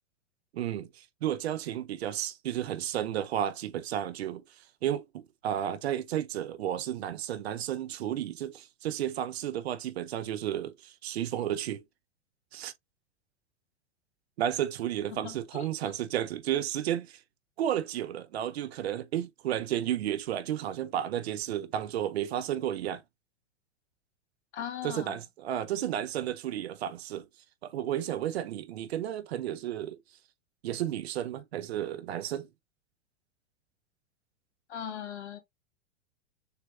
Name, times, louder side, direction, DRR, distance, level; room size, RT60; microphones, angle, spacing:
voice 1, 0.5-4.4 4.8-11.8 12.5-12.7 14.4-17.2 17.6-23.0 24.8-27.3 27.6-30.0 30.6-32.5, right 11 dB, 65° right, 0.8 m, -32 dB
voice 2, 15.1-15.7 24.5-25.2 34.7-35.4, left 9 dB, 70° left, 1.7 m, -39 dB
6.7 x 3.1 x 2.4 m
hypercardioid pair, 105°, 35 cm